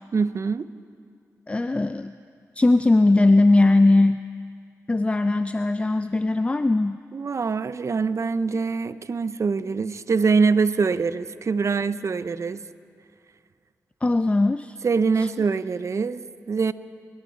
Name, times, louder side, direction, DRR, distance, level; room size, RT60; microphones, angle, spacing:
voice 1, 0.1-0.7 7.1-12.6 14.8-16.7, right 5 dB, 55° right, 15 dB, 0.6 m, -24 dB
voice 2, 1.5-2.1 2.6-4.2 4.9-7.0 14.0-14.8, left 2 dB, 20° left, 11 dB, 0.4 m, -19 dB
23.5 x 13.5 x 4.5 m, 2.3 s
cardioid pair, 55°, 6 cm